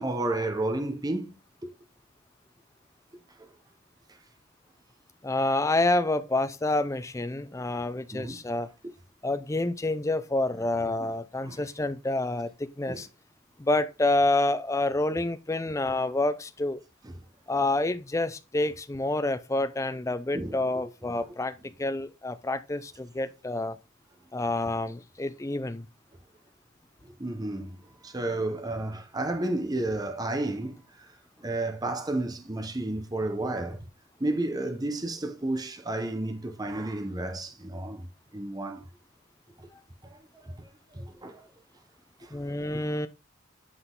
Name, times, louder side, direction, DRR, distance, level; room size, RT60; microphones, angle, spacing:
voice 1, 0.0-1.4 1.6-1.7 8.1-8.4 11.4-11.6 12.9-13.0 20.3-20.6 27.2-30.8 31.4-33.8 34.2-38.1 38.3-38.8 40.0-40.2 40.6-41.4 42.2-42.3, right 2 dB, 20° right, 0.8 m, -31 dB
voice 2, 5.2-8.7 9.2-13.1 13.6-16.8 17.5-23.8 24.3-25.9 42.3-43.1, left 2 dB, 15° left, 0.4 m, -28 dB
8.0 x 3.9 x 3.8 m
head